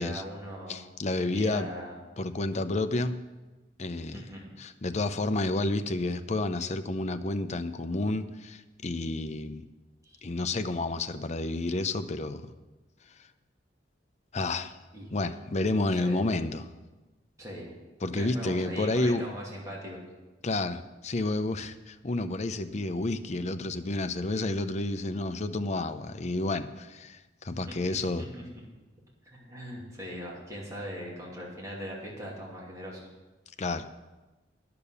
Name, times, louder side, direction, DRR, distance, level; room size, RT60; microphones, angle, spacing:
voice 1, 0.0-0.9 1.2-2.0 4.1-4.5 10.0-10.2 14.9-15.1 15.8-16.2 17.4-17.7 18.1-20.0 27.5-28.1 29.3-33.1, equal, 20° right, -4 dB, 2.6 m, -40 dB
voice 2, 0.7-1.7 2.2-3.2 3.8-4.3 4.6-9.7 10.2-12.5 14.3-14.7 15.1-16.7 18.0-19.2 20.4-28.2 33.6-33.9, left 2 dB, 40° left, 9 dB, 0.6 m, -30 dB
10.5 x 6.9 x 8.3 m, 1.1 s
head